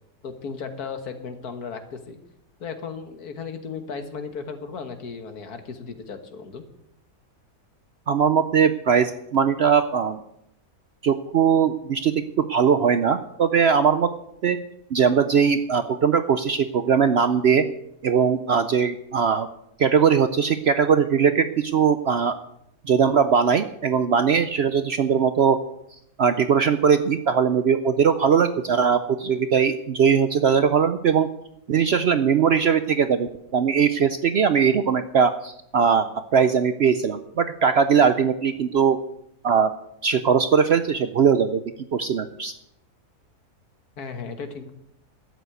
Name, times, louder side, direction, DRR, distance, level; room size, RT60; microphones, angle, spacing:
voice 1, 0.2-2.2 2.6-6.6 44.0-44.7, left 5 dB, 75° left, 8 dB, 1.9 m, -35 dB
voice 2, 8.1-10.2 11.0-14.1 14.4-14.6 14.9-17.6 18.0-19.5 19.8-22.4 22.8-25.6 26.2-31.3 31.7-39.0 39.4-39.7 40.0-41.6 41.9-42.5, right 7 dB, 60° right, 10 dB, 0.7 m, -20 dB
12.5 x 8.3 x 8.0 m, 0.81 s
omnidirectional pair, 1.6 m